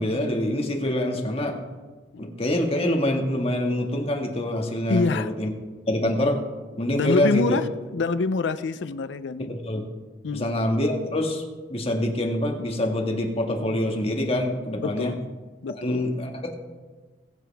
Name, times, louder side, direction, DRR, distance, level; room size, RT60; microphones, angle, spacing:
voice 1, 0.0-1.6 2.2-5.5 5.9-6.4 6.8-7.6 9.4-9.9 10.3-11.4 11.7-15.1 15.8-16.5, left 1 dB, 35° left, 1 dB, 1.8 m, -25 dB
voice 2, 4.9-5.3 6.9-9.5 10.2-10.6 14.8-15.2 15.6-16.1, left 4 dB, 70° left, 12 dB, 0.4 m, -26 dB
21.5 x 7.7 x 3.5 m, 1.3 s
head